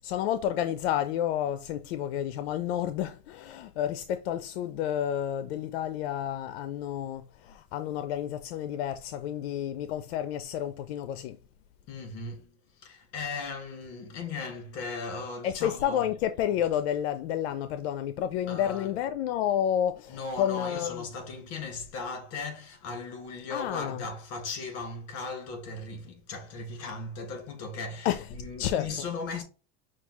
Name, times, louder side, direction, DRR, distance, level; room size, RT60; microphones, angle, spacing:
voice 1, 0.0-11.4 15.4-21.1 23.5-24.1 28.0-29.1, left 10 dB, 85° left, 0.5 m, -30 dB
voice 2, 11.9-16.1 18.5-18.9 20.1-29.4, left 4 dB, 55° left, 1.8 m, -37 dB
5.8 x 2.3 x 3.0 m
supercardioid pair, 120°, 31 cm